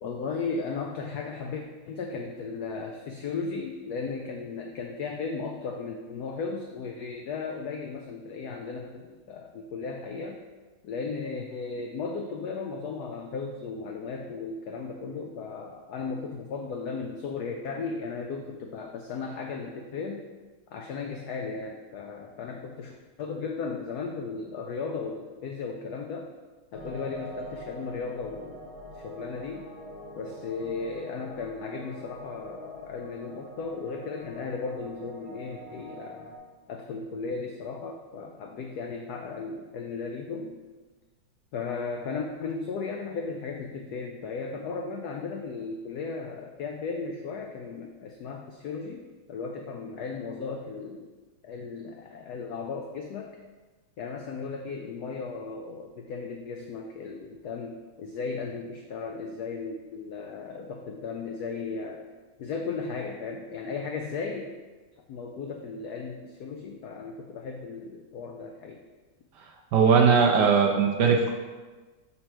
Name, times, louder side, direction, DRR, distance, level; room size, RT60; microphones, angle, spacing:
voice 1, 0.0-10.4 10.8-20.2 20.7-26.3 26.7-29.7 30.2-36.3 36.7-40.6 41.5-51.1 51.4-53.4 54.0-62.0 62.4-64.5 65.1-68.8, left 4 dB, 90° left, 2 dB, 0.8 m, -36 dB
sound 1, 26.7-36.4, equal, 60° left, 1.3 m, -44 dB
voice 2, 69.7-71.3, right 6 dB, 70° right, 2 dB, 1.0 m, -19 dB
5.9 x 4.3 x 4.4 m, 1.3 s
omnidirectional pair, 2.2 m